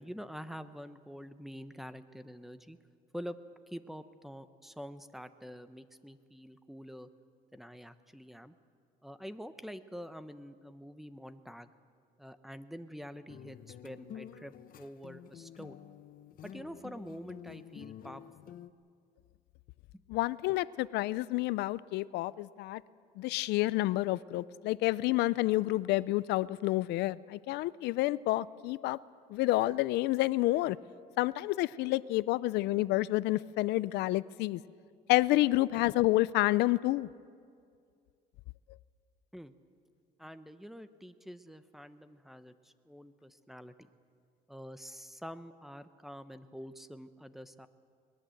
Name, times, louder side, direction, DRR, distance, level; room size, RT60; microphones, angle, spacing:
voice 1, 0.0-2.8 3.1-3.4 3.7-7.1 7.5-8.5 9.0-11.7 12.2-15.8 16.4-18.5 19.9-20.0 39.3-39.5 40.2-43.7 44.5-47.7, equal, ahead, 11 dB, 1.0 m, -46 dB
sound 1, 13.3-18.7, left 10 dB, 55° left, 0.9 m, -49 dB
voice 2, 20.1-22.8 23.2-29.0 29.3-30.8 31.2-34.6 35.1-37.1, left 18 dB, 85° left, 18 dB, 0.5 m, -29 dB
21.5 x 20.5 x 7.9 m, 2.2 s
cardioid pair, 110°, 17 cm